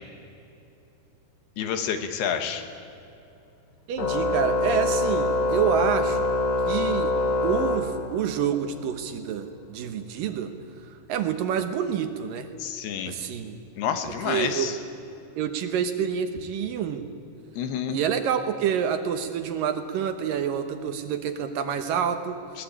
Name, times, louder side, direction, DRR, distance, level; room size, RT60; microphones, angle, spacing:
voice 1, 1.6-2.7 12.6-13.1 13.8-14.8 17.6-18.0 22.5-22.6, left 8 dB, 80° left, 8 dB, 3.5 m, -29 dB
voice 2, 3.9-6.3 6.7-7.2 7.4-10.5 11.1-12.5 13.1-13.6 14.2-14.7 15.4-17.1 17.9-22.4, right 8 dB, 70° right, 8 dB, 2.5 m, -27 dB
Organ, 4.0-8.5, left 2 dB, 50° left, 2.4 m, -25 dB
21.5 x 19.0 x 8.8 m, 2.7 s
omnidirectional pair, 4.6 m